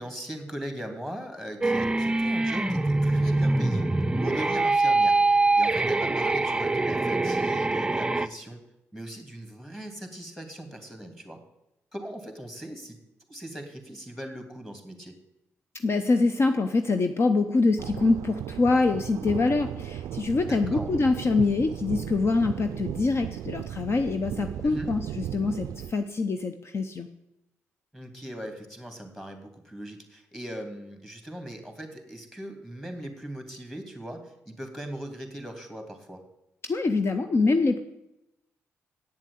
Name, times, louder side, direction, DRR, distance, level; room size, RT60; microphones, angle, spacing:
voice 1, 0.0-3.9 4.2-5.2 5.6-8.6 8.9-11.4 11.9-13.0 13.3-15.1 20.4-20.9 24.6-24.9 27.9-36.2, right 1 dB, 5° left, 5 dB, 2.9 m, -39 dB
sound 1, 1.6-8.3, right 2 dB, 15° right, 0.5 m, -24 dB
voice 2, 15.8-27.1 36.6-37.8, left 3 dB, 45° left, 8 dB, 0.8 m, -25 dB
sound 2, 17.8-25.9, right 11 dB, 75° right, 0.3 m, -36 dB
8.8 x 7.3 x 8.6 m, 0.89 s
supercardioid pair, 60°, 6 cm